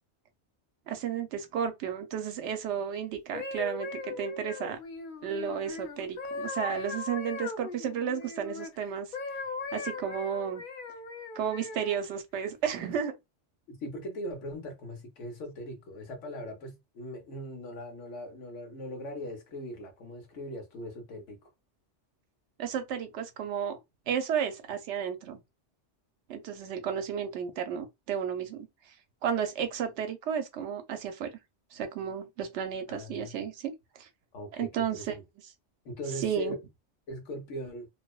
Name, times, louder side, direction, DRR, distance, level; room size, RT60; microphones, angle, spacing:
voice 1, 0.9-4.8 5.2-9.1 9.7-10.6 11.3-13.1 22.6-23.8 24.1-25.4 26.3-28.7 29.2-31.3 31.7-34.1 34.6-35.0 36.2-36.6, right 8 dB, 75° right, 0.9 m, -33 dB
sound 1, 3.1-8.7 9.1-12.0 12.7-12.9, left 4 dB, 55° left, 0.6 m, -39 dB
voice 2, 13.7-21.4 32.9-33.4 34.3-35.2 35.8-36.6 37.1-37.9, equal, 80° left, 1.2 m, -40 dB
2.8 x 2.0 x 2.2 m
omnidirectional pair, 1.2 m